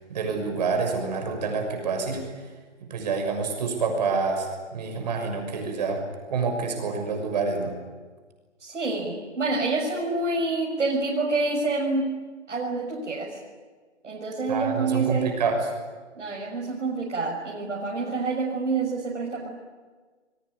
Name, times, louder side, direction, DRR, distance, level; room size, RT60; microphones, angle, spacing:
voice 1, 0.0-2.2 2.9-6.0 6.3-7.7 14.5-15.6, right 4 dB, 35° right, 4 dB, 6.3 m, -27 dB
voice 2, 8.6-12.1 12.5-13.3 14.0-15.3 16.2-19.5, right 3 dB, 80° right, -3 dB, 6.5 m, -27 dB
25.5 x 22.5 x 9.7 m, 1.4 s
hypercardioid pair, 170°, 36 cm